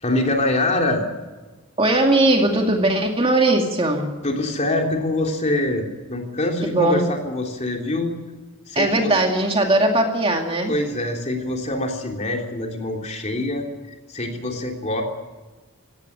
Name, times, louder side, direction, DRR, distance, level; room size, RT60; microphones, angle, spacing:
voice 1, 0.0-1.0 4.2-8.1 8.7-9.1 10.7-13.6 14.1-15.0, left 1 dB, 30° left, 2 dB, 3.4 m, -24 dB
voice 2, 1.8-4.1 6.6-7.1 8.8-10.7, right 1 dB, 25° right, 2 dB, 2.4 m, -19 dB
17.0 x 16.5 x 9.8 m, 1.3 s
head